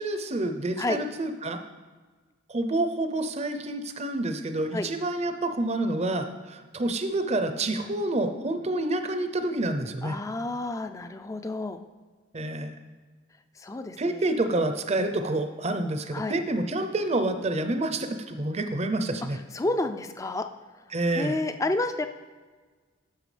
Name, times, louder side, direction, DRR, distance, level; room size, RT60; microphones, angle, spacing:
voice 1, 0.0-1.6 2.5-10.2 12.3-12.8 14.0-19.4 20.9-21.4, right 2 dB, 35° right, 8 dB, 0.6 m, -28 dB
voice 2, 10.0-11.8 13.6-14.2 16.1-16.4 19.5-20.5 21.2-22.1, left 2 dB, 15° left, 8 dB, 0.3 m, -30 dB
10.5 x 6.9 x 3.3 m, 1.4 s
head